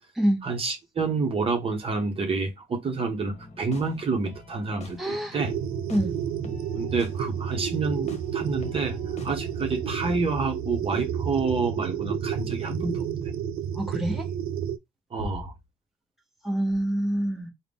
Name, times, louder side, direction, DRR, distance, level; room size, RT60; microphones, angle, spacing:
voice 1, 0.4-5.5 6.7-9.0 9.2-13.1 15.1-15.5, right 4 dB, 35° right, 1.0 m, -28 dB
sound 1, 3.3-10.3, left 3 dB, 40° left, 1.0 m, -45 dB
voice 2, 5.0-5.4 5.9-6.1 13.7-14.3 16.4-17.5, right 1 dB, ahead, 1.0 m, -26 dB
sound 2, 5.4-14.8, right 8 dB, 65° right, 0.4 m, -31 dB
3.7 x 2.2 x 3.5 m
cardioid pair, 110°, 17 cm